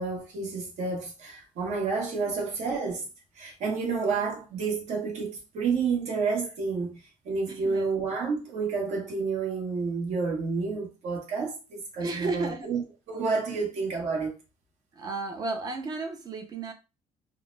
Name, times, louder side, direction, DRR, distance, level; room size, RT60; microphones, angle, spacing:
voice 1, 0.0-3.1 3.3-14.4, right 4 dB, 60° right, 1.0 m, -30 dB
voice 2, 7.5-7.9 12.0-12.7 13.5-13.6 14.9-16.7, right 3 dB, 30° right, 0.4 m, -34 dB
2.2 x 2.0 x 3.0 m
cardioid pair, 150°, 14 cm